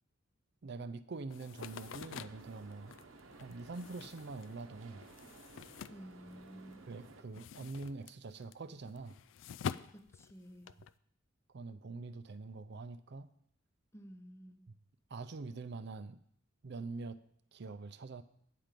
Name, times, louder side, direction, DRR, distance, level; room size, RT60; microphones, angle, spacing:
voice 1, 0.6-2.9 3.4-5.0 6.9-9.2 11.5-13.3 15.1-16.2 16.6-17.2 17.5-18.2, right 3 dB, 55° right, 12 dB, 0.5 m, -44 dB
sound 1, 1.3-6.7 7.0-10.9, left 7 dB, 65° left, 0.3 m, -46 dB
sound 2, 1.6-7.2, right 3 dB, 75° right, 0.9 m, -56 dB
voice 2, 5.9-6.9 9.9-10.7 13.9-14.7, equal, 15° left, 8 dB, 0.6 m, -52 dB
9.4 x 5.1 x 7.5 m, 0.68 s
head